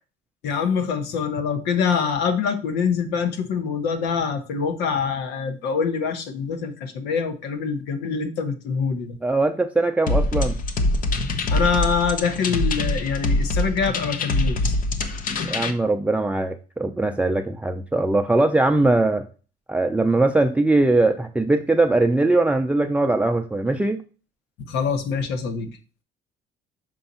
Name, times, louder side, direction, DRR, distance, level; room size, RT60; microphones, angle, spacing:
voice 1, 0.4-9.2 11.5-14.7 24.7-25.8, left 6 dB, 90° left, 9 dB, 1.2 m, -25 dB
voice 2, 9.2-10.6 15.5-19.2 19.7-24.0, right 2 dB, 10° right, 5 dB, 0.5 m, -21 dB
sound 1, 10.1-15.7, left 2 dB, 55° left, 0.9 m, -24 dB
6.6 x 4.5 x 4.2 m, 0.35 s
cardioid pair, 110°, 17 cm